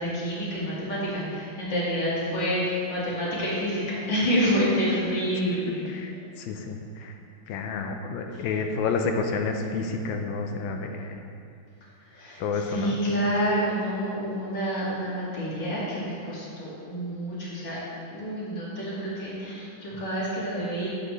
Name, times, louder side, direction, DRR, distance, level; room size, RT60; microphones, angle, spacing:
voice 1, 0.0-6.0 8.3-8.5 12.1-17.8 18.1-20.9, equal, 60° left, -8 dB, 2.7 m, -28 dB
voice 2, 4.9-5.6 5.9-7.1 7.5-11.2 12.4-13.0, left 4 dB, 75° left, 4 dB, 1.3 m, -30 dB
8.7 x 7.6 x 3.2 m, 2.4 s
omnidirectional pair, 2.3 m